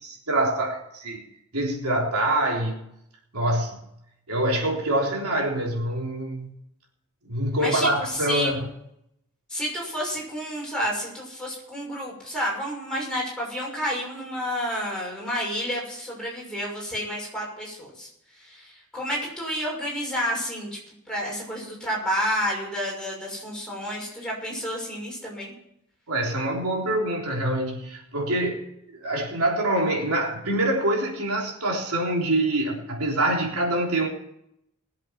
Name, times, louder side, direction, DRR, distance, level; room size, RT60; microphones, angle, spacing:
voice 1, 0.0-1.2 1.5-2.8 3.3-3.9 4.3-6.5 7.3-8.7 26.1-34.1, right 1 dB, 80° right, -1 dB, 3.6 m, -25 dB
voice 2, 7.6-8.6 9.5-18.1 18.4-20.8 21.1-25.5, equal, 5° left, -4 dB, 6.3 m, -30 dB
20.5 x 8.0 x 5.9 m, 0.76 s
head